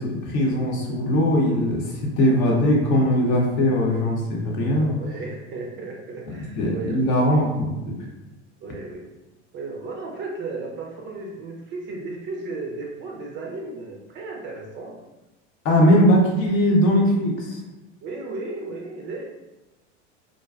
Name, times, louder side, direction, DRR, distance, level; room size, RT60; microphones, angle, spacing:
voice 1, 0.0-5.0 6.4-7.9 15.6-17.6, equal, 45° left, -1 dB, 0.7 m, -20 dB
voice 2, 4.6-7.4 8.6-9.1 9.5-15.0 18.0-19.4, right 3 dB, 35° right, -1 dB, 0.4 m, -35 dB
2.4 x 2.2 x 2.3 m, 1.0 s
hypercardioid pair, 105°, 34 cm